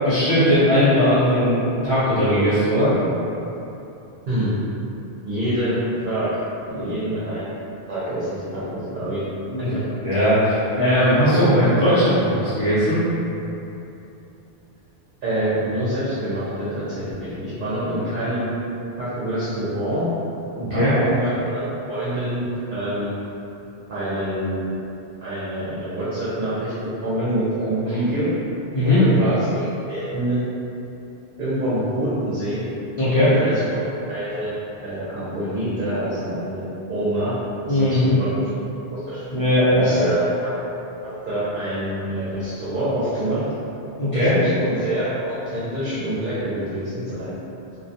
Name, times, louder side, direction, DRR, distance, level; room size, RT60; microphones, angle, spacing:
voice 1, 0.0-2.9 6.7-6.9 9.5-9.7 10.0-13.0 20.5-20.9 28.7-29.1 33.0-33.4 37.7-38.1 39.3-40.0 44.0-44.3, equal, 40° left, -15 dB, 0.5 m, -18 dB
voice 2, 5.3-6.3 6.8-7.5 7.9-9.2 15.2-18.5 19.0-20.1 20.7-21.6 21.9-23.1 23.9-24.7 25.2-26.7 27.0-28.3 28.8-30.4 31.4-32.6 33.2-33.8 34.1-34.5 34.8-37.4 37.7-38.5 38.9-39.2 39.8-40.3 41.0-43.4 44.0-47.4, right 1 dB, 55° right, -11 dB, 0.7 m, -26 dB
2.2 x 2.2 x 2.7 m, 2.9 s
omnidirectional pair, 1.1 m